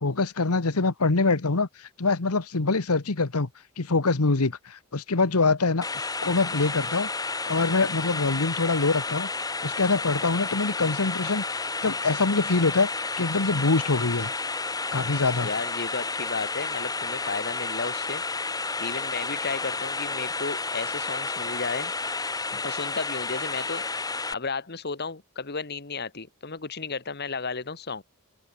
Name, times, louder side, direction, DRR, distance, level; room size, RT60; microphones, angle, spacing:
voice 1, 0.0-3.5 3.8-7.1 7.5-9.3 9.6-11.4 11.8-12.9 13.2-14.3 14.9-15.5, left 3 dB, 85° left, 1.3 m, -24 dB
sound 1, 5.8-24.3, left 3 dB, 15° left, 3.0 m, -31 dB
voice 2, 15.4-18.2 18.5-21.9 22.6-24.1 24.3-28.0, left 4 dB, 45° left, 1.7 m, -33 dB
open air
head